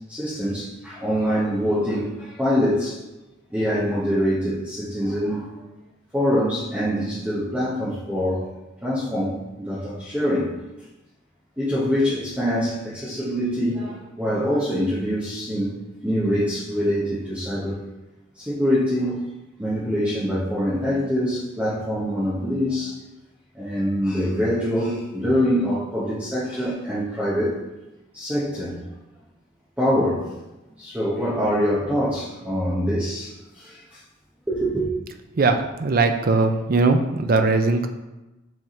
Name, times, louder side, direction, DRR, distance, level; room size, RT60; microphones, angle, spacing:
voice 1, 0.1-3.0 3.5-5.5 6.1-8.5 8.8-10.5 11.6-15.8 16.0-17.8 18.3-19.3 19.6-23.0 23.5-27.6 28.1-28.8 29.8-30.3 30.8-34.0 34.5-34.9, equal, 10° right, -11 dB, 1.0 m, -24 dB
voice 2, 35.4-37.9, right 3 dB, 45° right, 7 dB, 0.5 m, -20 dB
6.3 x 3.6 x 4.3 m, 1.0 s
head